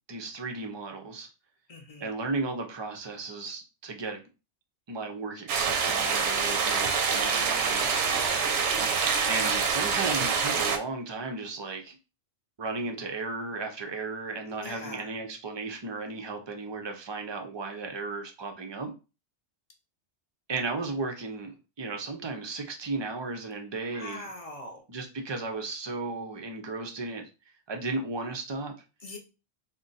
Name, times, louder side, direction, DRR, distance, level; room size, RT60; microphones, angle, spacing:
voice 1, 0.1-1.3 2.0-4.2 4.9-8.7 9.3-12.0 12.6-18.9 20.5-24.3 24.9-27.2 27.7-28.7, right 3 dB, 45° right, 4 dB, 0.3 m, -35 dB
voice 2, 1.7-2.1 14.6-15.1 23.9-24.8 29.0-29.2, left 2 dB, 40° left, 3 dB, 0.6 m, -42 dB
sound 1, 5.5-10.8, right 5 dB, 90° right, 0.9 m, -26 dB
2.5 x 2.1 x 3.8 m, 0.30 s
omnidirectional pair, 1.2 m